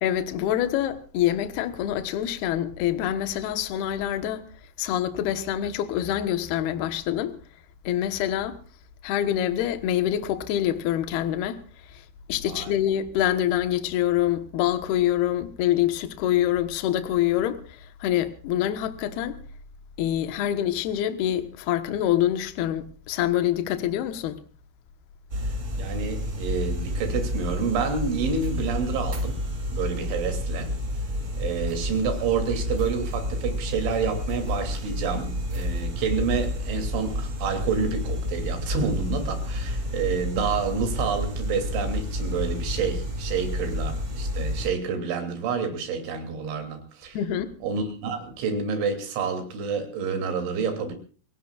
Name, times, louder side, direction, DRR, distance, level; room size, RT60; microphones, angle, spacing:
voice 1, 0.0-4.5 4.8-7.4 7.8-8.6 9.0-11.6 11.9-12.0 12.3-19.4 20.0-24.4 47.1-47.5, left 11 dB, 65° left, 2.7 m, -25 dB
sound 1, 25.3-44.7, left 1 dB, 30° right, 1.6 m, -30 dB
voice 2, 25.8-29.4 29.7-30.7 31.4-47.2 47.6-50.9, right 5 dB, 70° right, 5.3 m, -28 dB
30.0 x 17.5 x 2.5 m
omnidirectional pair, 5.8 m